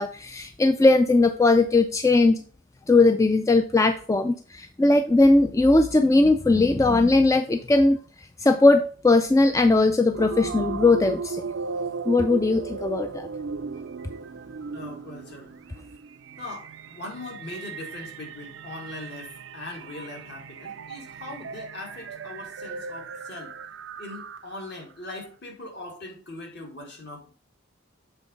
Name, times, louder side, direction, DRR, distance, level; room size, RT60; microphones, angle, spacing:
voice 1, 0.0-2.4 2.9-8.0 8.4-11.4 12.1-13.3, left 2 dB, 15° left, 7 dB, 0.3 m, -19 dB
sound 1, 10.1-24.7, right 5 dB, 70° right, 0.5 m, -36 dB
voice 2, 14.7-15.5 16.4-23.6 24.0-27.3, left 2 dB, 55° left, 1 dB, 2.2 m, -40 dB
7.4 x 3.8 x 5.1 m, 0.41 s
head